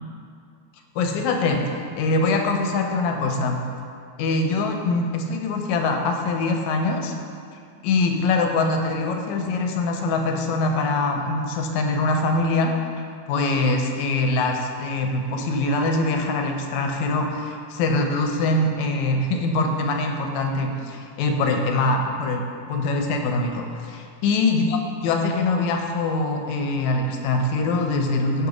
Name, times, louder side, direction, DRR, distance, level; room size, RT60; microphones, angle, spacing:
voice 1, 1.0-3.6 4.2-7.1 7.8-12.7 13.3-22.4 22.7-28.5, left 2 dB, 80° left, 3 dB, 1.9 m, -23 dB
6.9 x 3.9 x 4.9 m, 2.4 s
omnidirectional pair, 3.4 m